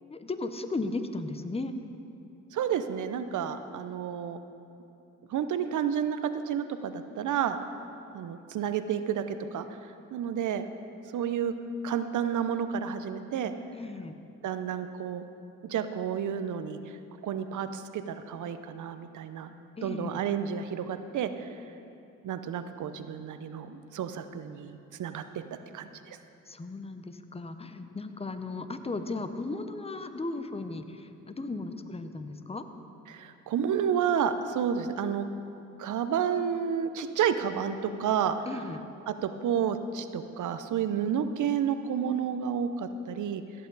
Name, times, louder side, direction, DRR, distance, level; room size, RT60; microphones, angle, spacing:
voice 1, 0.1-1.7 13.7-14.2 19.8-20.2 26.5-32.6 38.5-38.8, left 3 dB, 20° left, 9 dB, 0.8 m, -36 dB
voice 2, 2.5-4.4 5.3-7.6 8.1-9.7 10.1-10.7 11.1-11.5 11.8-13.5 14.4-15.3 15.6-19.5 19.8-21.6 22.2-25.2 25.7-26.2 33.1-35.3 35.8-38.4 39.1-43.4, right 8 dB, 65° right, 10 dB, 0.7 m, -30 dB
16.0 x 7.7 x 4.0 m, 2.7 s
supercardioid pair, 65°, 32 cm